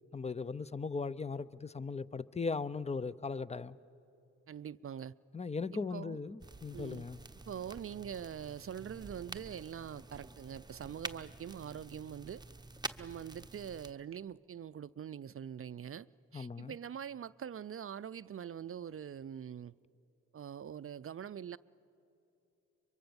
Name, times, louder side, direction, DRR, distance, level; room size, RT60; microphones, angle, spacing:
voice 1, 0.1-3.8 5.3-7.2 16.3-16.7, left 4 dB, 20° left, 0.6 m, -38 dB
voice 2, 4.5-5.2 5.7-6.2 6.7-7.1 7.5-12.4 13.0-16.1 16.3-19.7 20.3-21.6, right 8 dB, 45° right, 0.5 m, -44 dB
sound 1, 6.4-13.9, right 2 dB, 15° right, 0.9 m, -48 dB
23.5 x 23.0 x 7.1 m
cardioid pair, 55°, 32 cm